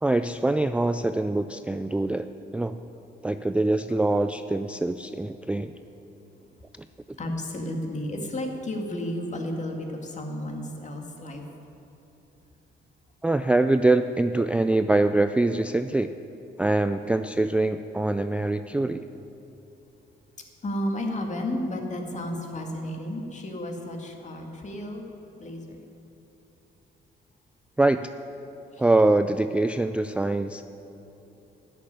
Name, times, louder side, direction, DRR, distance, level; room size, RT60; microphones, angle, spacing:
voice 1, 0.0-2.3 2.5-2.8 3.2-5.7 6.8-6.9 13.2-16.1 16.6-19.0 27.8-28.1 28.8-30.6, right 2 dB, 5° right, 9 dB, 0.3 m, -24 dB
voice 2, 7.2-11.4 20.6-25.1 25.4-25.8 28.7-28.8, left 1 dB, 35° left, 2 dB, 2.1 m, -32 dB
13.0 x 6.8 x 9.7 m, 3.0 s
cardioid pair, 90°, 20 cm